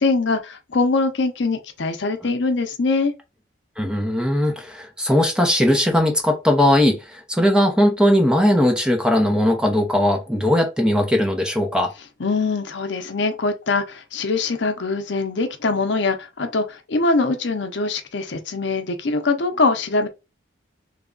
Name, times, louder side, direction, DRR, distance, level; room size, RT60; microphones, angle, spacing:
voice 1, 0.0-3.1 12.2-20.1, left 3 dB, 70° left, 0.6 m, -22 dB
voice 2, 3.8-11.9, left 1 dB, 5° right, 0.7 m, -19 dB
3.3 x 2.3 x 3.7 m
head